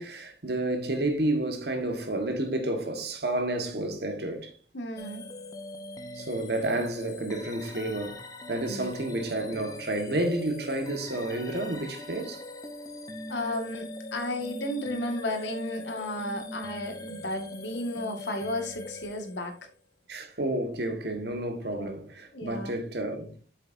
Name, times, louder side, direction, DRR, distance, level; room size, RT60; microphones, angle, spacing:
voice 1, 0.0-4.5 6.1-8.2 8.5-12.4 20.1-23.3, right 1 dB, 65° right, 1.6 m, -30 dB
voice 2, 4.7-5.2 8.7-8.9 13.3-19.5 21.8-21.9 22.3-22.7, left 1 dB, 85° left, 1.9 m, -33 dB
sound 1, 5.0-19.7, left 1 dB, 20° left, 0.9 m, -41 dB
7.9 x 6.8 x 2.7 m
head